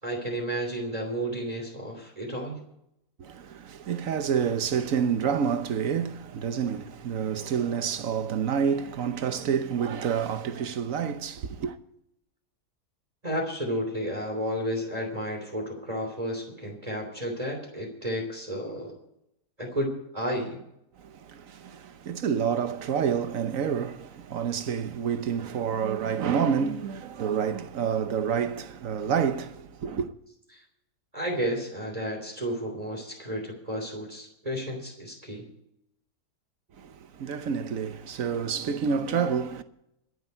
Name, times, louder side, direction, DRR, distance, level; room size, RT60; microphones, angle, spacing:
voice 1, 0.0-2.6 13.2-19.0 19.6-20.6 30.5-30.6 31.1-35.5, equal, 25° right, 3.1 m, -32 dB
voice 2, 3.2-11.8 21.0-30.1 36.8-39.6, right 7 dB, 60° right, 1.2 m, -28 dB
23.0 x 8.1 x 4.5 m
omnidirectional pair, 1.7 m